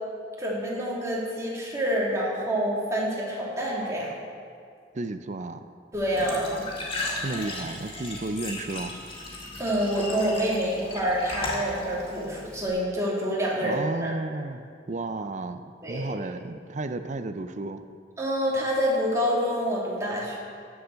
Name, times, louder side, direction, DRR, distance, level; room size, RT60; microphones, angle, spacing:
voice 1, 0.4-4.2 5.9-6.6 9.6-14.1 15.8-16.1 18.2-20.4, equal, 15° right, -5 dB, 2.8 m, -27 dB
voice 2, 4.9-5.7 7.2-8.9 13.6-17.8, right 2 dB, 40° right, 9 dB, 0.6 m, -33 dB
Glass / Trickle dribble / Fill (with liquid), 5.9-12.7, left 2 dB, 30° left, 2.1 m, -36 dB
14.5 x 7.1 x 6.4 m, 2.2 s
head